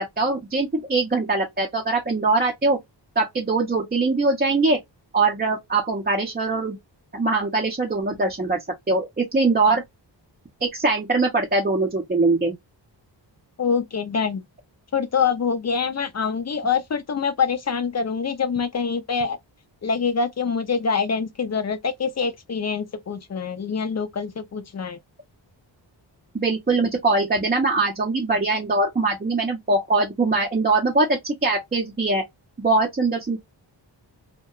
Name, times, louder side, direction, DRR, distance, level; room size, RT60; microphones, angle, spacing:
voice 1, 0.0-2.8 3.2-4.8 5.1-6.8 7.1-8.6 8.9-9.8 10.6-12.5 26.3-32.2 32.6-33.4, right 3 dB, 20° right, 0.5 m, -22 dB
voice 2, 13.6-14.4 14.9-19.4 19.8-25.0, left 5 dB, 40° left, 0.4 m, -25 dB
2.7 x 2.2 x 2.2 m
wide cardioid pair, 100°, 45 cm